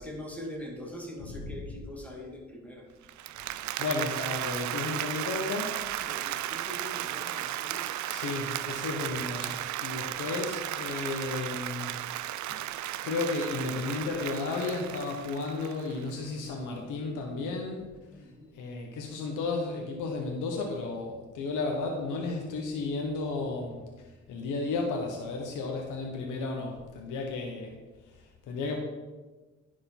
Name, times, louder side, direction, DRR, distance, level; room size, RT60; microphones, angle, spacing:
voice 1, 0.0-2.9 6.0-7.9 18.1-18.6, left 1 dB, 5° left, -1 dB, 2.6 m, -43 dB
Applause, 3.1-16.1, right 13 dB, 70° right, 0.5 m, -35 dB
voice 2, 3.6-5.8 8.1-12.6 13.0-17.9 18.2-18.3 18.5-27.8 28.1-28.8, left 3 dB, 85° left, 1 dB, 1.3 m, -33 dB
10.0 x 5.4 x 5.4 m, 1.2 s
cardioid pair, 80°, 30 cm